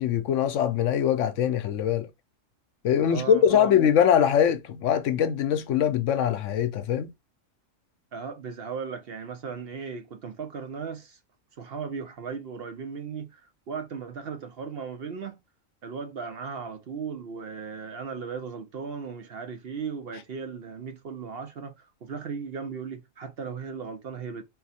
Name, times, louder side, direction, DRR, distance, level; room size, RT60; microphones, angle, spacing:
voice 1, 0.0-2.1 2.8-7.1, left 9 dB, 70° left, 0.9 m, -22 dB
voice 2, 3.0-3.7 8.1-11.2 11.6-15.4 15.8-24.4, right 5 dB, 55° right, 0.7 m, -37 dB
3.9 x 2.6 x 4.1 m
omnidirectional pair, 1.4 m